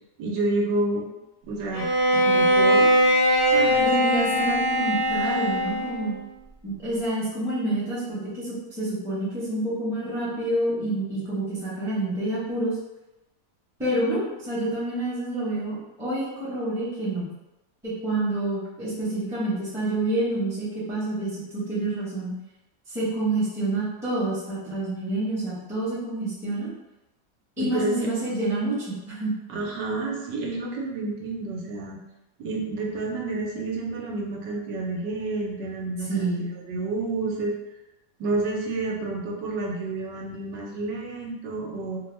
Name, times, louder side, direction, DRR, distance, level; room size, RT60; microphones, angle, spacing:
voice 1, 0.2-1.0 1.4-2.9 3.5-3.9 27.6-27.9 29.5-32.0 32.4-36.3 36.7-37.5 38.2-42.0, right 2 dB, 85° right, -2 dB, 1.3 m, -29 dB
Bowed string instrument, 1.7-6.2, equal, 60° left, 0.6 m, -21 dB
voice 2, 3.8-6.1 6.6-12.8 13.8-17.3 17.8-22.3 22.9-26.7 27.6-29.3 36.0-36.5, right 2 dB, 5° right, -10 dB, 0.6 m, -28 dB
3.1 x 2.2 x 3.1 m, 1.0 s
omnidirectional pair, 1.9 m